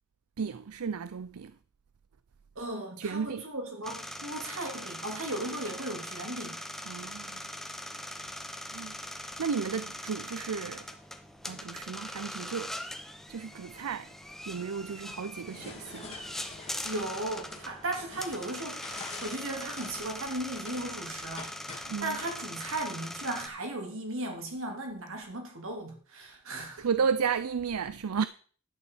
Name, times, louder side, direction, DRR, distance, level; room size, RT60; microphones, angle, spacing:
voice 1, 0.4-1.6 3.0-3.4 6.8-7.5 8.7-9.0 9.2-10.9 11.4-12.7 13.3-14.1 14.5-16.2 21.9-22.2 26.6-28.3, right 6 dB, 80° right, 0.5 m, -33 dB
voice 2, 2.5-6.6 16.8-26.9, right 1 dB, 60° right, 3.1 m, -36 dB
sound 1, 3.8-23.5, left 1 dB, ahead, 0.9 m, -41 dB
sound 2, 15.4-22.4, left 4 dB, 30° left, 3.0 m, -47 dB
11.0 x 9.2 x 4.9 m
head